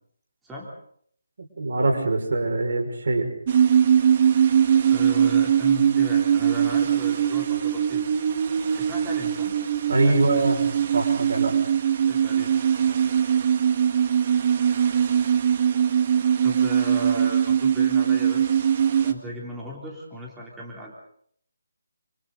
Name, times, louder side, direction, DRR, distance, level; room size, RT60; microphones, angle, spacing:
voice 1, 1.4-3.3 9.9-10.7 10.9-11.6, right 2 dB, 65° right, 4 dB, 6.0 m, -23 dB
sound 1, 3.5-19.1, right 8 dB, 35° right, 1.8 m, -21 dB
voice 2, 4.9-8.1 8.7-9.5 10.0-10.5 12.1-12.5 16.4-18.7 19.0-20.9, equal, 5° right, -4 dB, 3.5 m, -37 dB
29.0 x 28.5 x 4.1 m, 0.63 s
hypercardioid pair, 165°, 0 cm